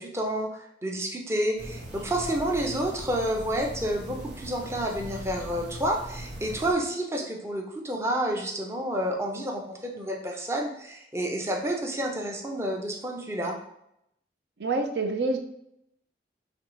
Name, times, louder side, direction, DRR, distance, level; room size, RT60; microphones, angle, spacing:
voice 1, 0.0-13.6, right 1 dB, 15° right, 1 dB, 0.6 m, -29 dB
sound 1, 1.6-6.7, right 1 dB, 85° right, 1.3 m, -40 dB
voice 2, 14.6-15.4, right 3 dB, 70° right, 5 dB, 0.6 m, -26 dB
5.1 x 3.3 x 3.0 m, 0.77 s
head